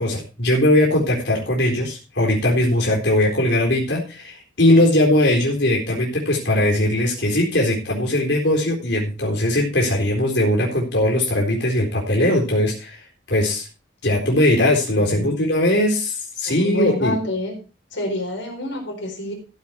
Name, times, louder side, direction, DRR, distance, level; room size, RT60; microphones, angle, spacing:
voice 1, 0.0-13.0 13.3-13.7 14.0-17.1, left 1 dB, 70° left, -1 dB, 4.0 m, -19 dB
voice 2, 15.0-15.4 16.5-17.5 17.9-19.3, left 2 dB, 90° left, 0 dB, 4.2 m, -27 dB
14.5 x 7.4 x 4.5 m, 0.32 s
head